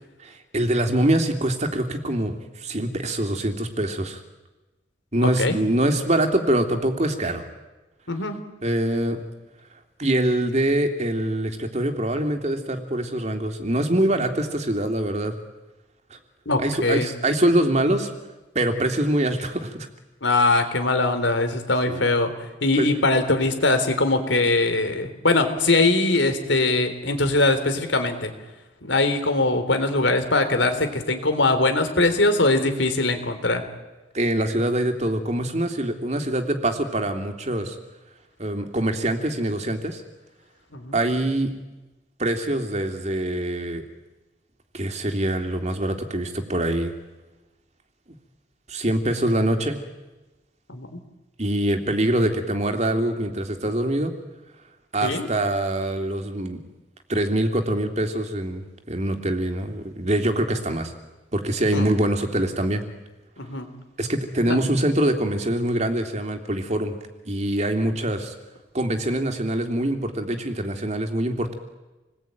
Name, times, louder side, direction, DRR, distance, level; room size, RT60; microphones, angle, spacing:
voice 1, 0.2-4.2 5.1-7.4 8.6-9.2 10.0-15.3 16.1-16.2 16.6-18.1 18.5-19.9 21.9-22.0 22.8-22.9 34.1-37.8 38.4-40.0 40.9-41.5 42.2-43.8 44.7-46.9 48.7-49.8 51.4-54.1 54.9-56.6 57.1-60.9 61.3-62.8 64.0-66.9 67.3-68.3 68.7-71.5, right 1 dB, 35° right, 5 dB, 2.7 m, -24 dB
voice 2, 5.2-5.6 8.1-8.3 16.5-17.1 20.2-28.3 28.8-33.6 40.7-41.0 50.7-51.0 55.0-55.3 61.7-61.9 63.4-63.7, left 2 dB, 85° left, 7 dB, 3.7 m, -22 dB
28.0 x 20.5 x 9.2 m, 1.1 s
head